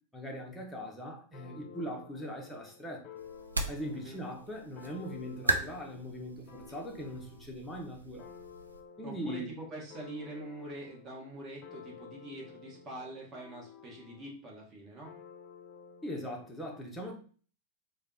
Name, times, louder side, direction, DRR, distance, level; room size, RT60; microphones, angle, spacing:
voice 1, 0.1-3.0 3.7-8.2 9.0-9.5 16.0-17.1, equal, 5° left, -2 dB, 0.8 m, -40 dB
sound 1, 1.3-7.5 8.2-14.4 15.0-16.5, left 7 dB, 40° left, 0.6 m, -52 dB
sound 2, 3.2-8.8, right 2 dB, 80° right, 0.4 m, -38 dB
voice 2, 3.9-4.2 9.0-15.2, right 2 dB, 30° right, -2 dB, 1.2 m, -44 dB
3.3 x 2.2 x 3.7 m, 0.42 s
figure-of-eight pair, 90°, 0 cm